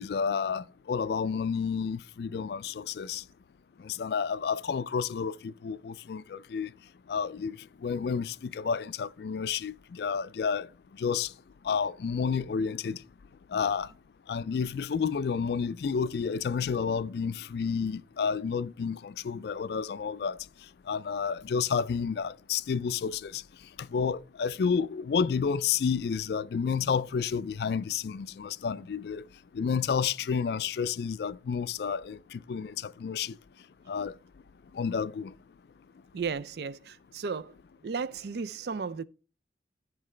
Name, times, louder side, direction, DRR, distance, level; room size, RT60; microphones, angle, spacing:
voice 1, 0.0-3.2 3.8-6.7 7.1-7.6 7.8-10.7 11.0-11.3 11.7-13.0 13.5-13.9 14.3-20.4 20.9-23.4 23.9-29.2 29.5-33.3 33.9-34.1 34.7-35.3, left 6 dB, 60° left, 0.3 m, -30 dB
voice 2, 36.1-37.6 37.8-39.0, right 5 dB, 60° right, 0.4 m, -34 dB
13.5 x 4.6 x 3.2 m
head